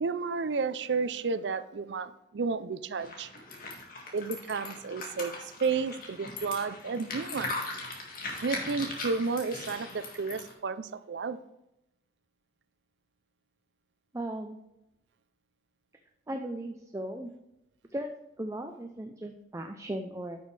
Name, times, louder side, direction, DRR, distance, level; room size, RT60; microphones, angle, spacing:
voice 1, 0.0-3.3 4.1-7.6 8.4-11.4, right 4 dB, 75° right, 13 dB, 0.5 m, -32 dB
sound 1, 3.0-10.5, left 2 dB, 55° left, 2.0 m, -39 dB
voice 2, 14.1-14.6 16.3-17.3 17.9-20.4, right 1 dB, 15° right, 5 dB, 0.5 m, -37 dB
10.0 x 6.4 x 3.3 m, 0.88 s
head